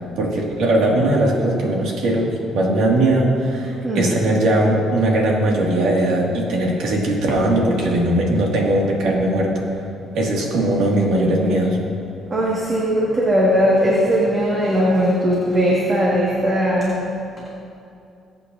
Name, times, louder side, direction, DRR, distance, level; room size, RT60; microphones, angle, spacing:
voice 1, 0.2-9.5 10.1-11.8, right 1 dB, 75° right, -2 dB, 2.2 m, -19 dB
voice 2, 12.3-17.0, equal, 30° right, -5 dB, 1.9 m, -18 dB
20.5 x 8.4 x 2.7 m, 2.6 s
cardioid pair, 105°, 0 cm